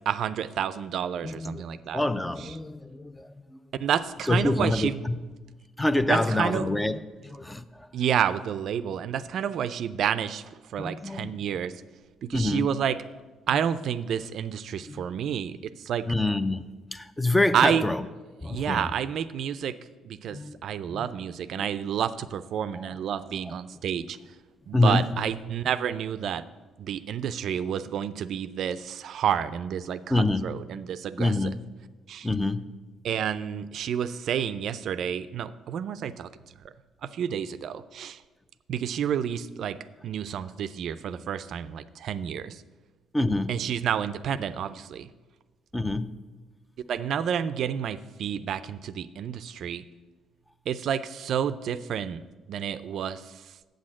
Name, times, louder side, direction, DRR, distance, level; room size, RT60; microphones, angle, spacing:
voice 1, 0.1-2.0 3.8-5.0 6.1-6.7 7.9-11.8 12.2-13.0 13.5-16.1 17.5-17.8 18.4-19.8 20.0-24.2 24.7-26.4 26.8-31.3 32.1-32.3 33.0-36.3 37.0-38.2 38.7-39.8 40.0-42.6 43.5-45.1 46.9-49.8 50.7-52.2 52.5-53.5, right 9 dB, 60° right, 0.4 m, -29 dB
voice 2, 1.2-1.6 1.9-3.6 4.3-5.3 5.8-7.9 10.8-11.4 12.3-12.7 13.5-13.6 14.8-15.1 16.1-18.1 18.4-18.9 20.3-21.1 21.6-21.7 22.7-23.0 23.4-23.5 24.7-25.2 30.1-30.5 31.2-31.6 32.2-32.7 43.1-43.5 45.7-46.3, left 2 dB, 10° left, 0.4 m, -27 dB
8.2 x 6.3 x 7.4 m
cardioid pair, 130°, 0 cm